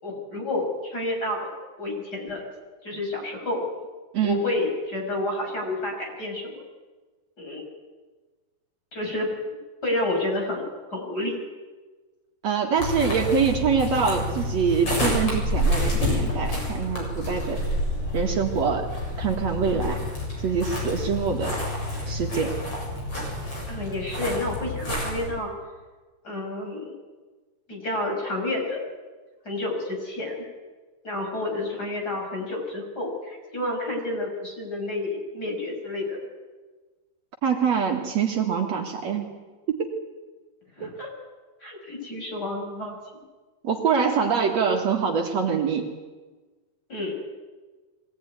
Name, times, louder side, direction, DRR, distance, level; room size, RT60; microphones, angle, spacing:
voice 1, 0.0-1.5 1.8-2.5 2.8-3.6 4.2-6.6 7.4-7.6 8.9-9.3 9.8-11.4 23.7-25.5 26.2-26.9 27.7-28.8 29.4-30.4 31.0-36.2 40.8-41.1 41.6-43.0 46.9-47.1, left 2 dB, 30° left, 1 dB, 6.2 m, -30 dB
voice 2, 12.4-17.6 18.1-18.9 19.2-20.0 20.4-21.5 22.1-22.6 37.4-39.3 39.7-39.9 40.8-40.9 43.6-45.9, right 6 dB, 60° right, 2 dB, 2.9 m, -24 dB
sound 1, 12.8-25.3, left 1 dB, 45° left, 8.6 m, -28 dB
23.5 x 18.0 x 9.6 m, 1.3 s
omnidirectional pair, 3.6 m